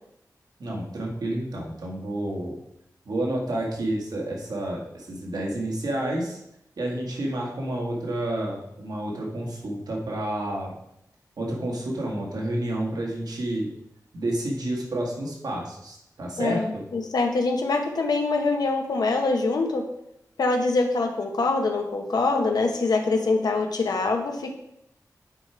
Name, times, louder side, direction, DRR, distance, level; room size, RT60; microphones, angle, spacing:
voice 1, 0.6-2.6 3.1-6.4 6.8-10.8 11.4-13.7 14.1-16.9, right 1 dB, 85° right, -2 dB, 2.0 m, -30 dB
voice 2, 16.4-19.8 20.4-24.5, left 3 dB, 90° left, 3 dB, 1.0 m, -24 dB
8.9 x 4.9 x 4.5 m, 0.79 s
wide cardioid pair, 120°, 7 cm